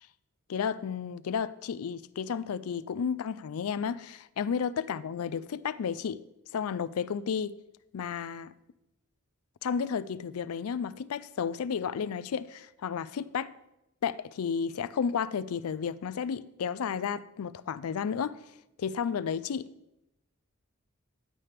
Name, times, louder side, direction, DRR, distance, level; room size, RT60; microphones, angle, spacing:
voice 1, 0.5-6.2 6.5-7.6 7.9-8.5 9.6-13.5 14.0-18.4 18.8-19.7, left 7 dB, 90° left, 0.4 m, -32 dB
11.0 x 8.8 x 3.4 m
head